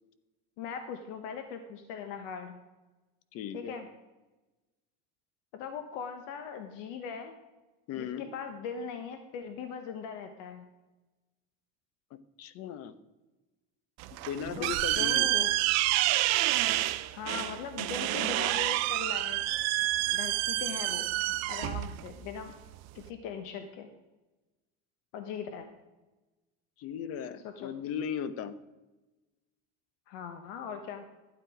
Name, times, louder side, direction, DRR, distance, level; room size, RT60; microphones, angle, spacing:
voice 1, 0.6-2.6 3.5-3.9 5.5-7.3 7.9-10.7 14.6-15.5 17.1-19.4 20.1-21.1 21.5-22.5 22.9-23.9 25.1-25.7 27.4-27.7 30.1-31.0, left 6 dB, 75° left, 7 dB, 1.2 m, -40 dB
voice 2, 3.3-3.8 7.9-8.3 12.4-12.9 14.3-15.3 26.8-28.5, left 8 dB, 55° left, 14 dB, 0.9 m, -37 dB
sound 1, 14.0-23.1, right 16 dB, 60° right, 0.7 m, -29 dB
12.0 x 8.3 x 4.9 m, 1.1 s
cardioid pair, 135°, 30 cm